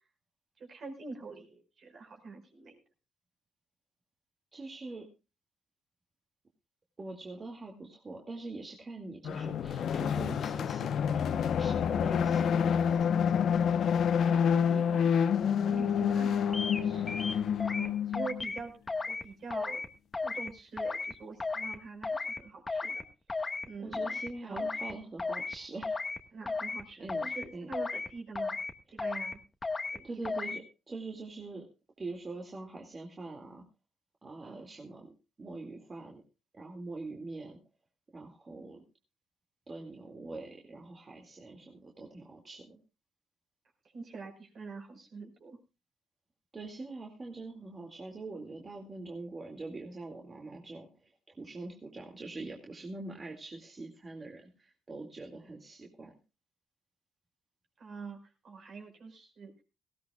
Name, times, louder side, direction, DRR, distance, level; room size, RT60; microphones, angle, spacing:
voice 1, 0.6-2.8 14.8-15.1 15.6-17.2 17.7-18.8 19.1-19.8 20.2-23.0 23.6-24.7 26.3-28.6 28.9-29.4 29.9-30.2 34.4-34.7 43.9-45.6 57.8-59.5, right 4 dB, 55° right, 3 dB, 5.2 m, -45 dB
voice 2, 4.5-5.1 7.0-12.9 14.2-15.2 23.4-23.5 23.8-26.2 27.0-27.3 27.5-27.7 30.0-31.6 32.0-33.6 34.2-35.1 35.4-36.2 36.5-37.6 38.1-38.8 39.7-42.8 46.5-56.1, right 3 dB, 30° right, 1 dB, 2.3 m, -44 dB
sound 1, 9.2-18.4, left 7 dB, 65° left, 0.9 m, -28 dB
sound 2, 16.5-16.8 17.1-17.9 18.1-18.6 18.9-19.2 19.5-19.9 20.1-20.5 20.8-21.1 21.4-21.8 22.0-22.4 22.7-23.0 23.3-23.7 23.9-24.3 24.6-24.9 25.2-25.6 25.8-26.2 26.5-26.8 27.1-27.4 27.7-28.1 28.4-28.7 29.0-29.3 29.6-30.0 30.3-30.6, left 3 dB, 25° left, 1.5 m, -34 dB
19.0 x 16.0 x 2.4 m, 0.29 s
cardioid pair, 90°, 0 cm